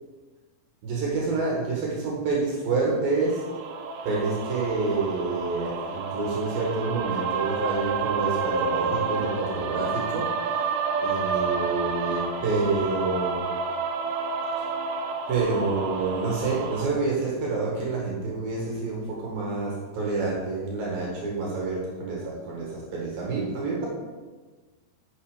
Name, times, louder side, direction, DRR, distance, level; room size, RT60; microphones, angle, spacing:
voice 1, 0.8-3.4 4.0-10.3 11.0-13.4 14.5-14.7 15.3-23.9, right 3 dB, 65° right, -3 dB, 3.2 m, -28 dB
sound 1, 3.3-16.8, right 5 dB, 85° right, 1.9 m, -29 dB
9.6 x 7.2 x 5.0 m, 1.3 s
omnidirectional pair, 4.8 m